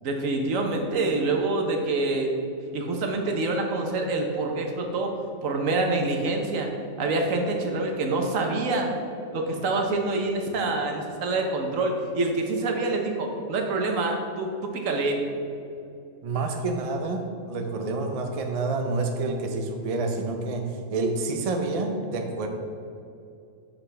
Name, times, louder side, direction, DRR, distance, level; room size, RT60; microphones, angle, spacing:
voice 1, 0.0-2.3 2.7-5.1 5.4-6.7 7.0-8.9 9.3-15.2, right 2 dB, 75° right, 2 dB, 1.3 m, -26 dB
voice 2, 16.2-22.5, right 3 dB, 40° right, 4 dB, 0.5 m, -28 dB
8.5 x 5.7 x 3.3 m, 2.6 s
omnidirectional pair, 1.4 m